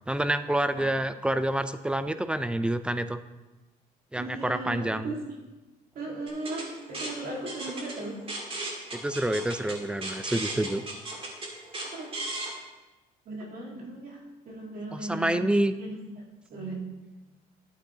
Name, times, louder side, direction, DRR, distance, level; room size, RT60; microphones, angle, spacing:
voice 1, 0.1-3.2 4.1-5.1 8.9-10.8 14.9-15.7, right 1 dB, 5° right, 12 dB, 0.4 m, -28 dB
voice 2, 4.2-5.2 6.0-8.2 11.9-12.2 13.3-15.4 15.8-16.0 16.5-16.9, right 2 dB, 55° right, -2 dB, 2.0 m, -37 dB
sound 1, 6.3-12.5, right 2 dB, 35° right, 2.2 m, -36 dB
11.5 x 8.0 x 2.9 m, 1.1 s
cardioid pair, 110°, 17 cm